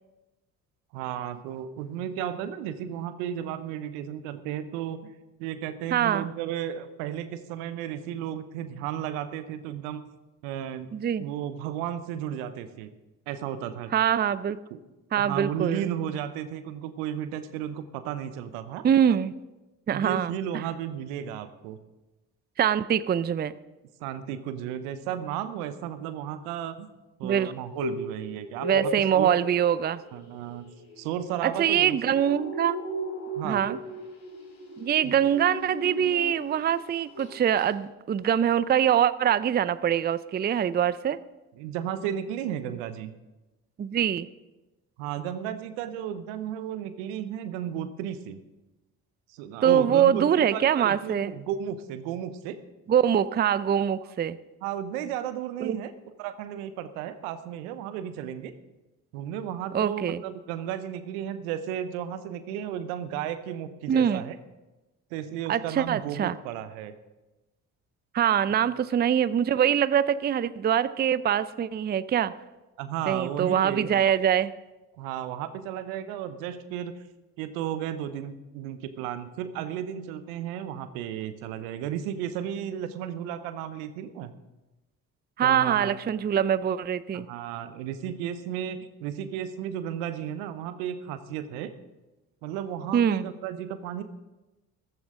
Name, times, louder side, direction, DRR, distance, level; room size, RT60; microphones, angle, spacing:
voice 1, 0.9-5.0 5.4-10.0 10.4-10.9 11.2-12.9 13.3-13.9 14.7-14.8 15.1-18.9 19.9-21.8 24.0-26.9 27.2-29.3 30.1-30.7 31.0-32.0 33.4-33.8 35.0-35.1 41.6-43.1 45.0-48.4 49.3-52.6 54.6-55.9 56.2-58.5 59.1-64.4 65.1-66.9 68.5-68.7 72.8-74.0 75.0-77.0 77.4-84.3 85.4-86.0 87.1-91.7 92.4-94.0, right 10 dB, 75° right, 12 dB, 0.9 m, -34 dB
voice 2, 5.9-6.3 10.9-11.3 13.9-14.6 15.1-15.9 18.8-19.3 19.9-20.6 22.6-23.5 27.2-27.5 28.6-30.0 31.4-32.8 33.4-33.8 34.8-41.2 43.8-44.3 49.6-51.3 52.9-54.4 55.6-55.8 59.7-60.2 63.9-64.2 65.5-66.4 68.1-72.3 73.1-74.5 85.4-87.3 92.9-93.3, right 9 dB, 25° right, 16 dB, 0.5 m, -24 dB
sound 1, 27.4-36.7 37.0-37.3 37.6-37.7, equal, 70° left, 3.3 m, -37 dB
14.5 x 14.0 x 3.7 m, 1.1 s
hypercardioid pair, 45°, 42 cm